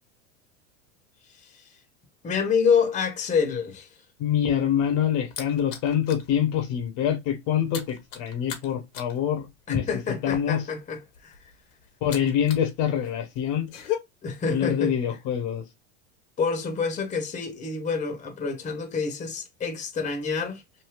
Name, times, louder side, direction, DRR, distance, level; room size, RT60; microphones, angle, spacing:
voice 1, 2.2-3.9 9.7-11.4 14.2-15.0 16.4-20.6, left 5 dB, 20° left, 0.9 m, -27 dB
voice 2, 4.2-9.8 10.2-10.6 12.0-13.7 14.5-15.6, left 9 dB, 55° left, 0.9 m, -25 dB
sound 1, 4.6-6.3 6.7-6.9 7.1-12.7 13.0-14.0, left 11 dB, 80° left, 1.1 m, -37 dB
3.3 x 2.6 x 2.2 m
supercardioid pair, 115°, 37 cm